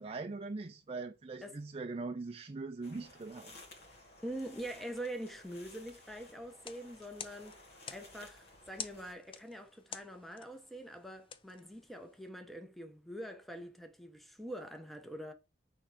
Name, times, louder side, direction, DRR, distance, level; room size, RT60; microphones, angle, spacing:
voice 1, 0.0-3.5, right 3 dB, 35° right, 0.5 m, -41 dB
sound 1, 2.8-9.1, left 2 dB, 60° left, 2.2 m, -56 dB
voice 2, 4.2-7.6 7.9-15.3, right 1 dB, ahead, 0.9 m, -44 dB
sound 2, 6.6-12.3, left 6 dB, 30° left, 0.6 m, -50 dB
6.4 x 4.6 x 4.9 m
head